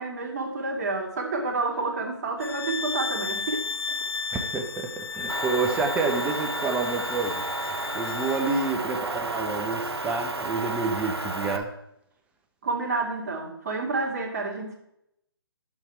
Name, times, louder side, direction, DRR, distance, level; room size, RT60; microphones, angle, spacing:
voice 1, 0.0-4.0 12.6-14.8, right 3 dB, 40° right, 1 dB, 2.3 m, -29 dB
sound 1, 2.4-8.8, left 4 dB, 70° left, 0.4 m, -34 dB
voice 2, 4.3-7.4 7.9-11.7, right 4 dB, 10° right, 4 dB, 1.0 m, -28 dB
Motor vehicle (road) / Engine, 5.3-11.6, right 3 dB, 80° right, 1.3 m, -32 dB
11.5 x 7.4 x 4.6 m, 0.79 s
figure-of-eight pair, 145°, 13 cm